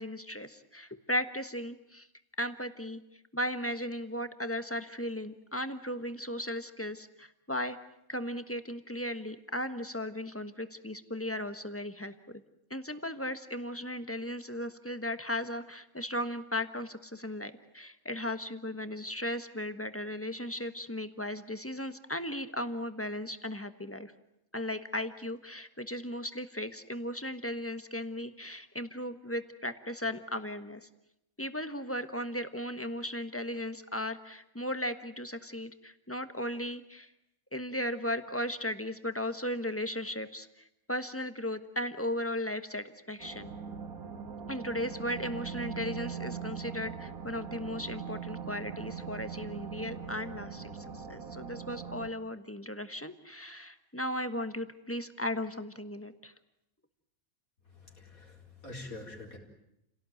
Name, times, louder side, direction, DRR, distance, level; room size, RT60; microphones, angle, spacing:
voice 1, 0.0-2.1 2.4-3.0 3.3-7.8 8.1-12.1 12.7-24.1 24.5-30.9 31.4-37.1 37.5-40.5 40.9-43.5 44.5-56.3, left 1 dB, 10° left, 9 dB, 1.3 m, -36 dB
sound 1, 43.2-52.1, right 7 dB, 85° right, 2.1 m, -41 dB
voice 2, 57.7-59.4, left 2 dB, 80° left, 0 dB, 4.9 m, -46 dB
30.0 x 18.0 x 9.3 m, 0.86 s
omnidirectional pair, 1.5 m